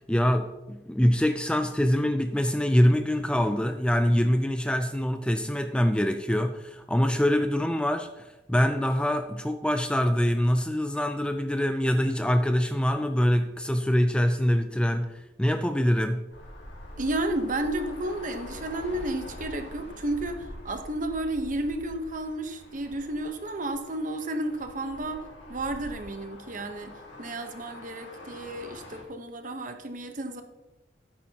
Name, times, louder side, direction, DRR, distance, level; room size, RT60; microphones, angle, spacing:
voice 1, 0.1-15.1 15.4-16.3, equal, 5° left, 8 dB, 0.4 m, -24 dB
sound 1, 16.3-29.0, left 1 dB, 85° left, 3.0 m, -45 dB
voice 2, 17.0-25.2 25.5-26.9 27.2-30.4, right 1 dB, 45° right, 7 dB, 1.0 m, -32 dB
13.5 x 9.4 x 2.9 m, 1.0 s
head